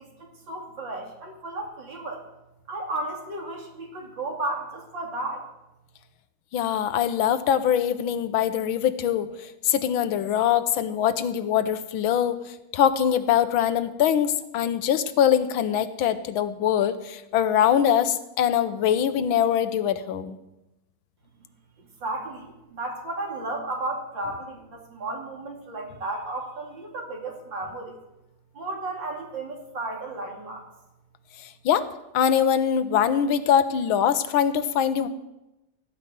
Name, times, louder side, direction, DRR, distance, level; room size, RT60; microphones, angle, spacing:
voice 1, 0.0-2.2 2.7-5.4 22.0-28.0 28.6-30.6, right 2 dB, 65° right, 1 dB, 3.4 m, -33 dB
voice 2, 6.5-20.4 31.4-31.9 32.1-35.1, left 9 dB, 85° left, 12 dB, 1.6 m, -23 dB
17.0 x 5.6 x 9.2 m, 0.96 s
omnidirectional pair, 2.1 m